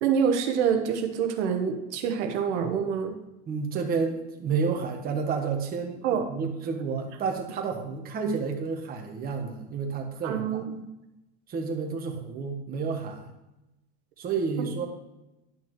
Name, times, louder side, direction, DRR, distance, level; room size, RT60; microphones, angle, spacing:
voice 1, 0.0-3.2 6.0-6.2 10.2-10.8, right 7 dB, 90° right, 5 dB, 1.1 m, -26 dB
voice 2, 3.5-10.6 11.5-13.3 14.2-14.9, right 5 dB, 25° right, 2 dB, 1.2 m, -30 dB
11.0 x 5.8 x 3.1 m, 0.94 s
supercardioid pair, 150°, 34 cm